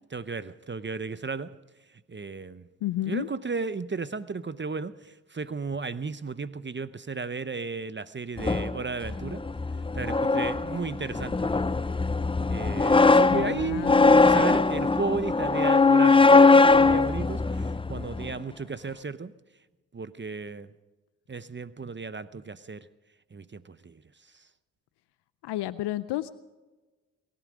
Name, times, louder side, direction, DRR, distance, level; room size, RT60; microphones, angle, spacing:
voice 1, 0.1-1.6 2.1-2.7 3.1-9.5 9.9-11.5 12.5-19.3 19.9-20.7 21.3-22.9 23.3-24.0 24.3-24.4, right 4 dB, 30° right, 15 dB, 0.8 m, -34 dB
voice 2, 2.8-3.3 13.3-14.3 25.4-26.3, left 15 dB, 80° left, 15 dB, 0.6 m, -31 dB
sound 1, 8.4-18.3, left 3 dB, 15° left, 0.6 m, -21 dB
23.0 x 11.5 x 5.1 m, 1.2 s
supercardioid pair, 40°, 40 cm